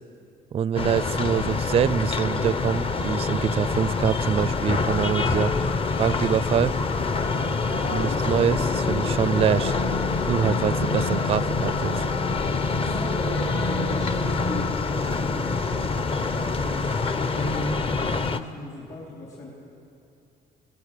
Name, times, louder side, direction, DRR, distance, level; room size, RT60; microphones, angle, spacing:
voice 1, 0.5-5.5 6.0-6.7 7.9-9.7 10.3-12.1, right 8 dB, 35° right, 19 dB, 0.4 m, -25 dB
sound 1, 0.8-18.4, left 3 dB, 35° left, 0.8 m, -25 dB
voice 2, 12.7-19.5, left 2 dB, 50° left, -4 dB, 3.8 m, -37 dB
23.5 x 17.5 x 6.7 m, 2.6 s
cardioid pair, 110°, 17 cm